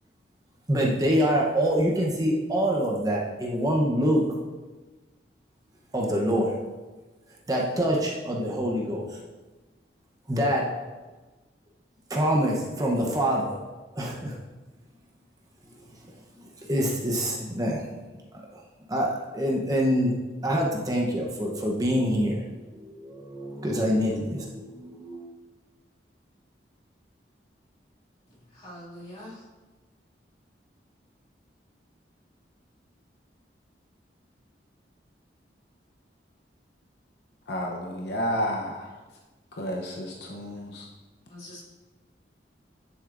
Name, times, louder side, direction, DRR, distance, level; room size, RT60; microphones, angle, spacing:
voice 1, 0.7-4.2 5.9-6.6 7.5-9.2 10.3-10.6 12.1-13.6 13.9-14.3 16.7-17.8 18.3-18.4 18.9-20.1 20.4-22.4 22.8-25.3, equal, 20° right, -2 dB, 0.8 m, -25 dB
voice 2, 28.5-29.4 41.3-41.6, left 1 dB, 35° left, -7 dB, 2.4 m, -43 dB
voice 3, 37.5-38.9 39.5-40.9, equal, 65° left, 0 dB, 0.8 m, -31 dB
9.8 x 7.0 x 2.6 m, 1.2 s
head